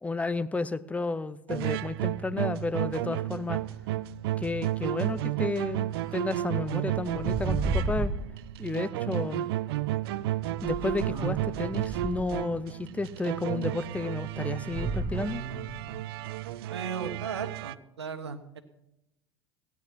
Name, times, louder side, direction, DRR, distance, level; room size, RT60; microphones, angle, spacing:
voice 1, 0.0-3.6 4.4-8.1 8.6-9.5 10.6-15.5, left 3 dB, 10° left, 16 dB, 0.7 m, -32 dB
sound 1, 1.5-17.7, right 14 dB, 65° right, 0.5 m, -32 dB
sound 2, 6.0-6.2 6.9-8.2 9.4-9.5 10.6-12.4 14.5-16.0, right 2 dB, 25° right, 5.8 m, -33 dB
voice 2, 16.7-18.6, right 6 dB, 85° right, 10 dB, 1.3 m, -36 dB
16.0 x 9.6 x 5.8 m, 0.86 s
figure-of-eight pair, 75°, 14 cm